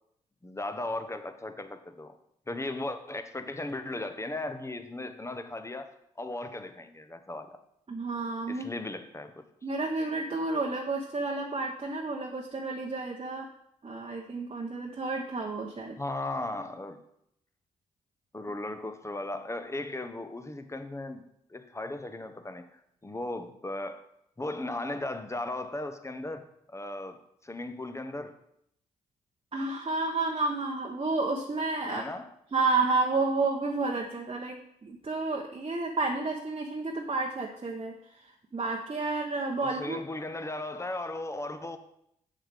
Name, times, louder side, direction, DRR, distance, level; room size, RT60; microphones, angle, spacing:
voice 1, 0.4-2.1 2.5-7.6 8.5-9.4 16.0-17.0 18.3-21.2 21.5-24.0 24.4-28.3 31.8-32.3 39.6-41.8, left 2 dB, 15° left, 8 dB, 1.0 m, -37 dB
voice 2, 7.9-8.7 9.6-13.5 13.8-16.0 29.5-32.1 32.5-37.9 38.5-40.0, right 3 dB, 35° right, 0 dB, 1.1 m, -30 dB
7.3 x 7.1 x 3.5 m, 0.75 s
hypercardioid pair, 45°, 17 cm